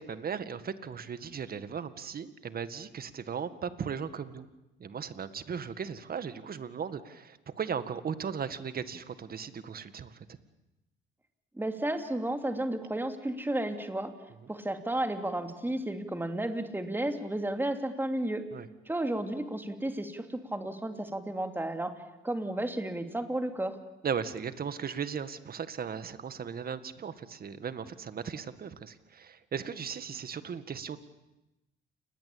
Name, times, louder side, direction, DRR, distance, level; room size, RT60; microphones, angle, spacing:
voice 1, 0.0-4.5 4.8-10.4 18.5-18.7 24.0-31.0, right 7 dB, 50° right, 12 dB, 1.9 m, -37 dB
voice 2, 11.5-14.1 14.5-18.5 18.9-21.9 22.2-23.8, right 1 dB, 10° right, 6 dB, 3.1 m, -32 dB
29.0 x 21.0 x 8.7 m, 0.97 s
cardioid pair, 90°, 20 cm